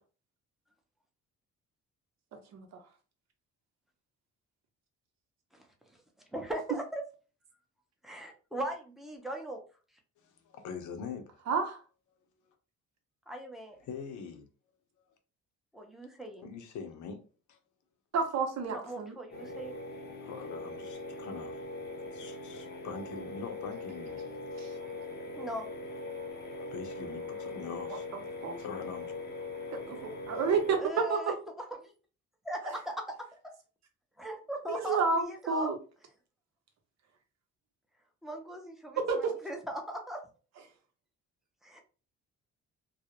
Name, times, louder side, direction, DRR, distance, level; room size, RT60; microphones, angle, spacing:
voice 1, 6.3-7.0 8.0-9.6 13.3-13.8 15.7-16.5 18.7-19.8 25.4-25.7 30.8-31.9 32.4-32.9 34.2-35.7 38.2-40.2 41.6-41.8, equal, ahead, 0.6 m, -39 dB
voice 2, 10.2-11.4 13.8-14.5 15.0-15.1 16.4-17.6 20.2-21.7 22.1-24.2 26.6-28.1 28.6-29.2, left 6 dB, 80° left, 0.6 m, -43 dB
voice 3, 11.5-11.8 18.1-19.1 24.6-24.7 28.4-28.6 29.7-31.2 34.7-35.8 39.0-39.3, right 5 dB, 60° right, 0.8 m, -30 dB
sound 1, 19.3-30.8, left 2 dB, 35° left, 0.7 m, -41 dB
2.3 x 2.0 x 2.8 m
cardioid pair, 90°, 30 cm